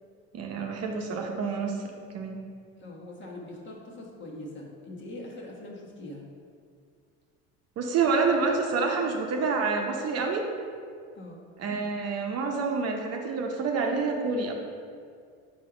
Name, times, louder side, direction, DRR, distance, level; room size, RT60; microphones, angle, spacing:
voice 1, 0.3-1.8 2.1-2.4 7.8-10.4 11.6-14.5, right 4 dB, 50° right, 2 dB, 0.8 m, -27 dB
voice 2, 2.8-6.3 11.1-11.4, left 1 dB, 35° left, -2 dB, 1.3 m, -42 dB
5.0 x 4.2 x 4.9 m, 2.2 s
supercardioid pair, 95°, 31 cm